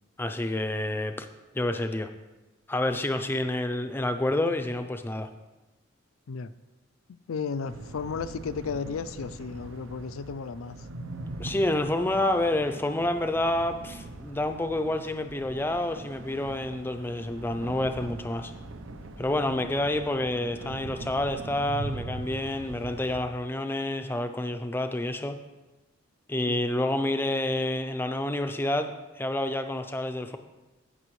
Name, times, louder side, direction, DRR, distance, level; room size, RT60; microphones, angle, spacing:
voice 1, 0.2-1.3 1.5-2.1 2.7-5.3 11.4-18.5 19.2-25.4 26.3-30.4, left 1 dB, 10° left, 8 dB, 0.4 m, -28 dB
voice 2, 7.1-10.8 19.5-19.6 26.5-26.6, left 5 dB, 85° left, 14 dB, 0.4 m, -34 dB
sound 1, 7.6-23.2, right 2 dB, 70° right, 0.7 m, -41 dB
16.0 x 5.9 x 3.1 m, 1.1 s
head